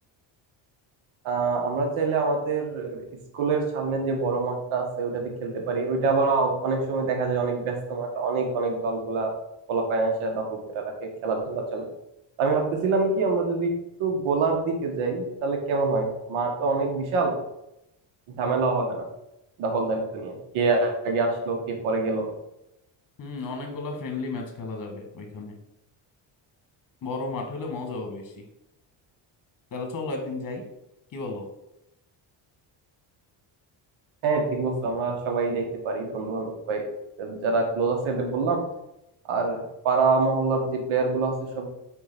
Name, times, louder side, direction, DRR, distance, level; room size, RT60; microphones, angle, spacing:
voice 1, 1.2-3.0 3.3-9.4 9.7-11.9 12.4-13.7 14.0-17.3 18.3-19.0 19.6-22.3 34.2-36.8 37.2-38.6 39.3-41.7, right 4 dB, 85° right, 2 dB, 1.6 m, -26 dB
voice 2, 23.2-25.6 27.0-28.5 29.7-30.6 31.1-31.5, left 3 dB, 40° left, 3 dB, 1.7 m, -33 dB
4.6 x 4.5 x 5.8 m, 0.86 s
cardioid pair, 90°, 47 cm